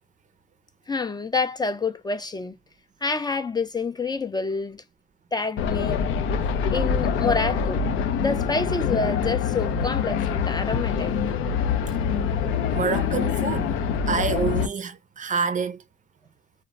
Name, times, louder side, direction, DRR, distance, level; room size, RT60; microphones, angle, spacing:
voice 1, 0.9-2.5 3.0-4.8 5.3-6.0 6.7-7.8 8.2-11.2, left 4 dB, 20° left, 0.4 m, -27 dB
sound 1, 5.6-14.7, left 7 dB, 85° left, 0.5 m, -25 dB
voice 2, 12.7-13.8 14.1-15.8, right 6 dB, 40° right, 0.5 m, -27 dB
2.1 x 2.1 x 3.8 m
cardioid pair, 90°, 20 cm